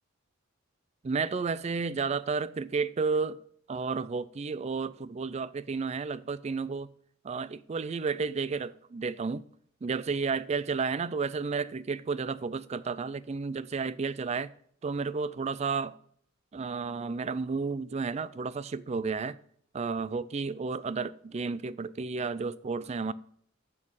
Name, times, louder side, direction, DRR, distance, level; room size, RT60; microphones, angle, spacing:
voice 1, 1.0-3.4 3.7-6.9 7.2-9.4 9.8-14.5 14.8-16.0 16.5-19.4 19.7-23.1, right 4 dB, 30° right, 0.3 m, -32 dB
7.4 x 5.5 x 6.4 m
head